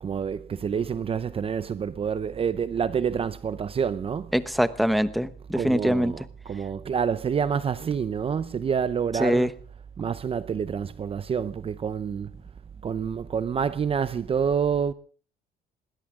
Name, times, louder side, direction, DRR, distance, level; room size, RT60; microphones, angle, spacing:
voice 1, 0.0-4.4 5.5-9.5 10.0-12.3 12.8-14.9, right 7 dB, 35° right, 0.7 m, -28 dB
voice 2, 4.3-6.1 9.2-9.5, equal, ahead, 1.0 m, -23 dB
20.5 x 17.0 x 3.7 m
cardioid pair, 110°, 17 cm